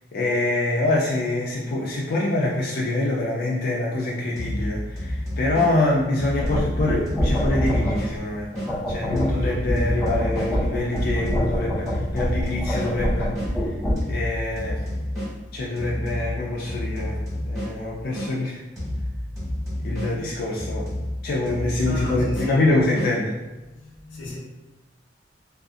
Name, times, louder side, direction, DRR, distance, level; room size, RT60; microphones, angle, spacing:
voice 1, 0.1-8.5 8.9-13.3 14.1-14.8 15.5-17.2 17.5-18.6 19.8-20.9 21.2-23.3, left 2 dB, 55° left, 0.4 m, -25 dB
sound 1, 4.4-8.7 9.2-13.5 14.0-18.3 18.8-23.1, left 1 dB, 20° right, 1.3 m, -31 dB
sound 2, 6.4-8.1 8.5-13.9, equal, 5° left, 0.8 m, -26 dB
voice 2, 19.6-20.4 21.8-22.8 23.6-24.4, left 1 dB, 85° left, 0.7 m, -37 dB
2.7 x 2.3 x 2.3 m
head